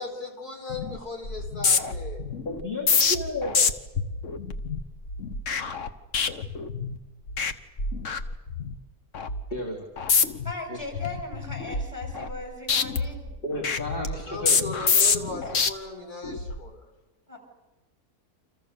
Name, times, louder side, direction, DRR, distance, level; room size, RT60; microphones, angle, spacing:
voice 1, 0.0-2.2 14.0-16.8, left 2 dB, 75° left, 2 dB, 4.8 m, -37 dB
sound 1, 0.7-1.0 1.2-7.0 7.3-7.5 7.8-8.7 9.1-9.4 10.0-10.5 10.9-12.4 12.7-15.7 16.2-16.6, left 5 dB, 55° left, 1.5 m, -26 dB
voice 2, 2.4-3.6 9.5-9.8 10.7-10.8 13.4-14.6, left 1 dB, 35° left, 0 dB, 3.4 m, -32 dB
voice 3, 10.4-13.4 17.3-17.4, left 3 dB, 10° left, 2 dB, 7.8 m, -38 dB
29.5 x 28.0 x 6.7 m, 1.1 s
omnidirectional pair, 1.7 m